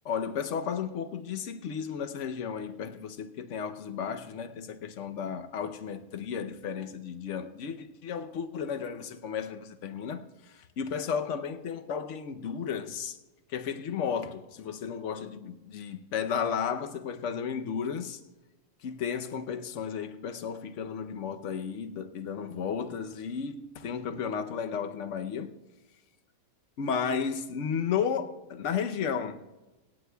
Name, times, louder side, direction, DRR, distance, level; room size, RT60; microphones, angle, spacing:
voice 1, 0.0-10.2 10.8-13.2 13.5-18.2 18.8-25.6 26.8-29.4, left 7 dB, 60° left, 1.0 m, -33 dB
25.5 x 9.7 x 2.3 m
omnidirectional pair, 1.6 m